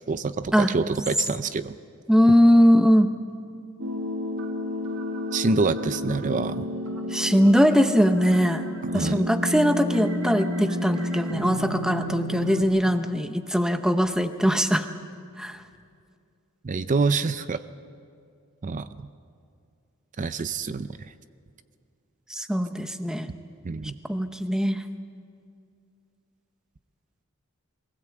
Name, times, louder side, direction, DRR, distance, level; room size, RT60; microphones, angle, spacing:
voice 1, 0.1-1.7 5.3-6.7 8.9-9.2 16.6-17.6 18.6-18.9 20.2-20.9 23.6-23.9, right 4 dB, 35° right, 12 dB, 0.4 m, -26 dB
voice 2, 2.1-3.2 7.1-8.7 8.9-14.9 15.4-15.6 22.3-23.3 24.1-24.8, equal, 5° right, 8 dB, 0.7 m, -21 dB
sound 1, 3.8-12.6, left 1 dB, 70° right, 1.7 m, -30 dB
22.5 x 16.5 x 7.8 m, 2.3 s
head